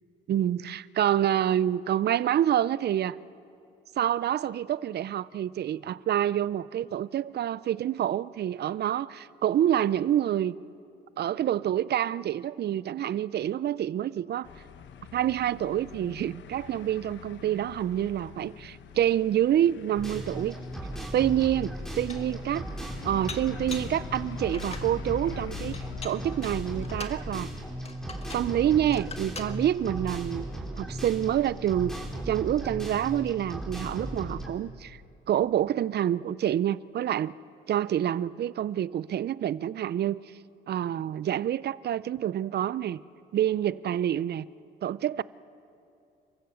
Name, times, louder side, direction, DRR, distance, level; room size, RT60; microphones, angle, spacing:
voice 1, 0.3-3.2 4.0-10.6 11.2-14.5 15.1-20.5 21.1-22.6 23.1-25.8 26.0-27.5 28.3-30.5 30.8-31.9 32.3-35.0 35.3-37.3 37.7-40.2 40.7-43.0 43.3-44.5 44.8-45.2, right 11 dB, 55° right, 0.5 m, -27 dB
sound 1, 14.4-27.0, left 9 dB, 70° left, 1.0 m, -45 dB
sound 2, 20.0-34.5, right 1 dB, ahead, 3.9 m, -37 dB
Dishes pots and pans, 21.2-21.3 21.8-22.4 23.3-24.0 24.4-24.9 25.7-27.2 27.8-28.5 28.9-29.6, left 4 dB, 30° left, 1.7 m, -42 dB
28.5 x 15.0 x 7.0 m
cardioid pair, 90°, 20 cm